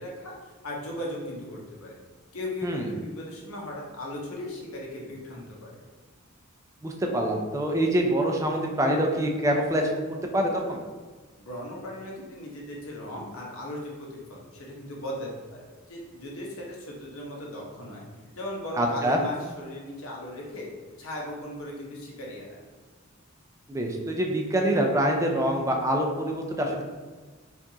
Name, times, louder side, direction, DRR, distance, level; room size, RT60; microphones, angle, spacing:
voice 1, 0.0-2.0 2.3-5.8 11.4-18.0 18.3-20.7 21.0-22.6, left 1 dB, 85° left, -2 dB, 0.9 m, -37 dB
voice 2, 6.8-9.8 10.3-10.8 18.8-19.2 23.7-26.9, right 1 dB, 15° right, 1 dB, 0.4 m, -25 dB
4.5 x 2.4 x 2.8 m, 1.4 s
head